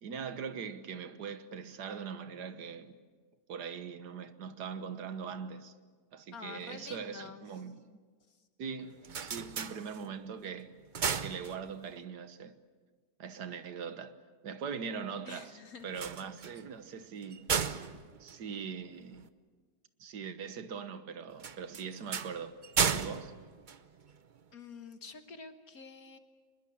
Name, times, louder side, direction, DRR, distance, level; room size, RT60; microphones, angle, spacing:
voice 1, 0.0-2.9 3.5-5.7 6.1-8.0 8.6-10.7 11.2-12.5 13.2-14.1 14.4-15.6 15.8-17.8 18.2-19.3 20.0-22.6 22.9-23.3, right 6 dB, 85° right, 1.8 m, -41 dB
voice 2, 6.3-7.5 15.3-15.9 24.5-26.2, left 5 dB, 65° left, 1.8 m, -48 dB
sound 1, 8.8-10.3 10.7-12.0 15.8-19.3 21.4-24.4, right 6 dB, 45° right, 0.7 m, -35 dB
24.5 x 21.5 x 8.6 m
omnidirectional pair, 1.7 m